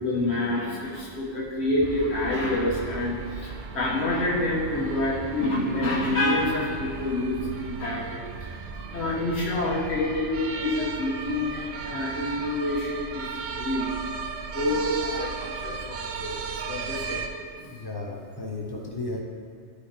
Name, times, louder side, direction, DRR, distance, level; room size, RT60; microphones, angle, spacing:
voice 1, 0.0-14.0 14.5-17.2, left 1 dB, 60° left, -5 dB, 1.6 m, -28 dB
sound 1, 1.8-17.3, right 5 dB, 60° right, 0.7 m, -36 dB
voice 2, 17.6-19.2, left 2 dB, 20° left, -2 dB, 0.9 m, -34 dB
11.0 x 4.9 x 3.4 m, 2.3 s
omnidirectional pair, 1.3 m